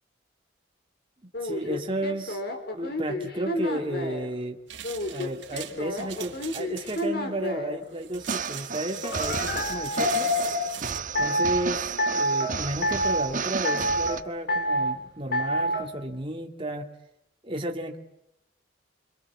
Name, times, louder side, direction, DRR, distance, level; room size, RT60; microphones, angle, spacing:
sound 1, 1.3-4.3 4.8-7.8 9.0-10.7 11.2-11.6 12.0-12.5 12.8-13.3 13.6-14.2 14.5-15.0 15.3-15.8, equal, 55° left, 4.4 m, -28 dB
voice 1, 1.4-2.4 2.7-4.6 5.1-10.3 11.2-16.9 17.4-18.0, right 1 dB, 30° right, 2 dB, 2.2 m, -33 dB
sound 2, 4.7-11.0, right 11 dB, 75° right, 3.0 m, -41 dB
sound 3, 8.2-14.2, right 5 dB, 45° right, 1.3 m, -33 dB
29.5 x 25.0 x 7.3 m, 0.82 s
head